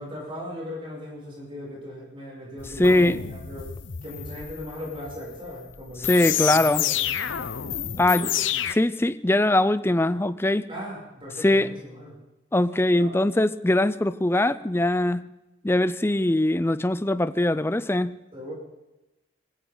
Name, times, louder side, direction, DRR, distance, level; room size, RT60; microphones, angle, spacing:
voice 1, 0.0-2.8 3.1-3.7 4.0-7.0 7.8-8.4 10.7-12.2 12.9-13.1 18.3-18.5, equal, 30° right, -4 dB, 7.2 m, -38 dB
sound 1, 2.6-8.7, left 11 dB, 90° left, 0.8 m, -29 dB
voice 2, 2.8-3.2 6.1-6.8 8.0-8.3 8.7-10.7 11.4-11.7 12.5-15.3 15.6-18.2, left 1 dB, 15° left, 14 dB, 0.5 m, -21 dB
20.0 x 17.0 x 4.0 m, 0.99 s
head